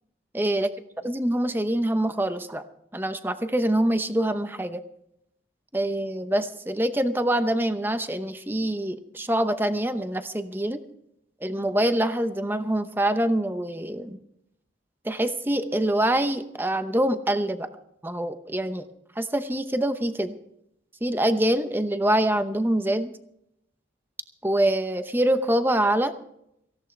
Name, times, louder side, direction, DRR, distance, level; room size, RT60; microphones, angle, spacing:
voice 1, 0.3-0.7 1.0-2.6 2.9-4.8 5.7-10.8 11.4-14.2 15.0-17.7 18.0-18.8 19.2-20.4 21.0-23.1 24.4-26.1, right 1 dB, 10° right, 9 dB, 0.8 m, -25 dB
18.0 x 16.0 x 3.3 m, 0.78 s
head